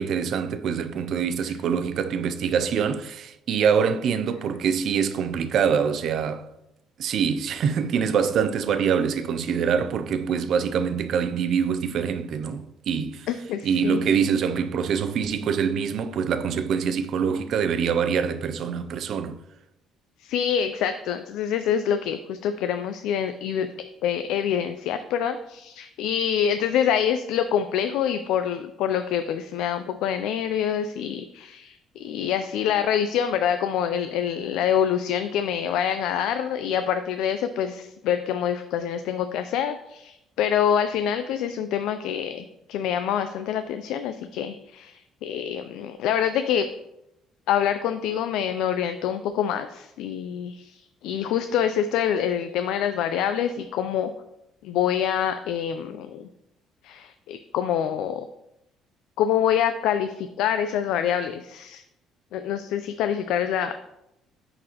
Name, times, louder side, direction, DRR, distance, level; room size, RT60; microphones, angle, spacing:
voice 1, 0.0-6.5 7.0-13.3 13.6-19.4, right 7 dB, 50° right, 0.4 m, -25 dB
voice 2, 13.3-14.0 20.2-23.7 24.0-46.7 47.5-54.1 54.6-56.3 56.8-58.3 59.2-61.8 62.3-63.8, left 9 dB, 75° left, 0.3 m, -26 dB
9.9 x 4.0 x 2.9 m
cardioid pair, 155°, 0 cm